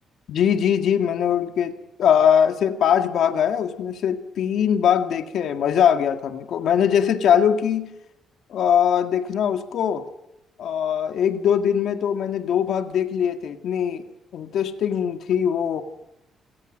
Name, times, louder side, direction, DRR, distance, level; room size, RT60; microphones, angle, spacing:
voice 1, 0.3-7.9 8.5-10.0 10.6-14.0 14.3-15.8, left 8 dB, 70° left, 6 dB, 1.9 m, -21 dB
28.5 x 18.5 x 6.4 m, 0.88 s
cardioid pair, 90°, 0 cm